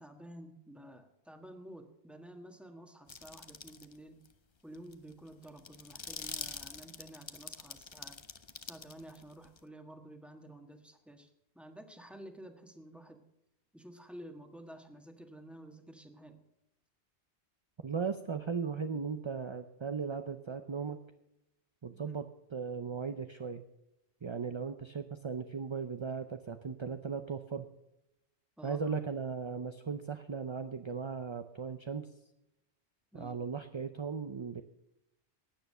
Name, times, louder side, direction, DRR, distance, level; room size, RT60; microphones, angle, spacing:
voice 1, 0.0-4.2 4.6-8.2 8.6-11.3 11.5-13.2 13.7-16.4 22.0-22.2 28.6-28.8 33.1-33.4, right 1 dB, ahead, 5 dB, 1.4 m, -51 dB
sound 1, 3.1-3.9 4.3-4.4 4.7-9.6, left 5 dB, 30° left, 0.6 m, -45 dB
voice 2, 17.8-21.0 21.8-22.2 22.5-23.6 24.2-27.7 28.6-32.1 33.1-34.6, right 5 dB, 35° right, 8 dB, 0.5 m, -37 dB
16.0 x 9.3 x 5.6 m, 0.87 s
omnidirectional pair, 1.2 m